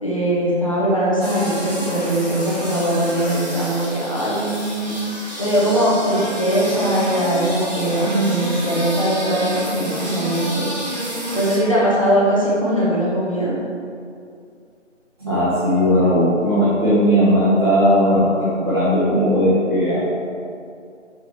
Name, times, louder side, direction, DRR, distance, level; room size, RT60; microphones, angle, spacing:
voice 1, 0.0-4.9 5.4-10.8 11.3-13.5, right 1 dB, 25° left, -8 dB, 1.2 m, -20 dB
sound 1, 1.2-11.6, equal, 35° right, 1.4 m, -30 dB
voice 2, 15.2-20.1, equal, 20° right, -15 dB, 1.1 m, -17 dB
6.0 x 4.9 x 4.7 m, 2.4 s
figure-of-eight pair, 170°, 38 cm